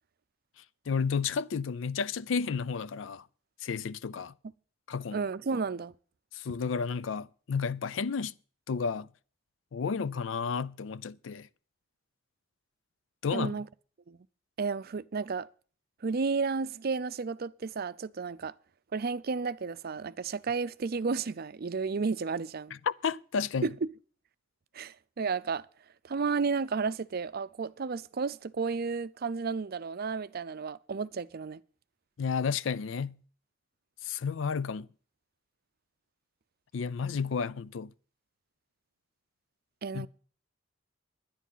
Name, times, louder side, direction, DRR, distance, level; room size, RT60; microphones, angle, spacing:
voice 1, 0.9-3.2 3.6-4.3 4.9-5.2 6.3-8.3 8.7-9.1 9.7-11.5 13.2-13.6 22.9-23.7 32.2-33.2 34.0-34.9 36.7-37.9 39.9-40.1, left 5 dB, 75° left, 0.5 m, -32 dB
voice 2, 5.1-5.9 13.3-13.7 14.1-14.2 14.6-15.5 16.0-18.5 18.9-22.7 23.6-23.7 24.7-25.6 26.0-31.6 39.8-40.1, right 4 dB, 50° right, 0.5 m, -32 dB
10.5 x 10.0 x 5.6 m
head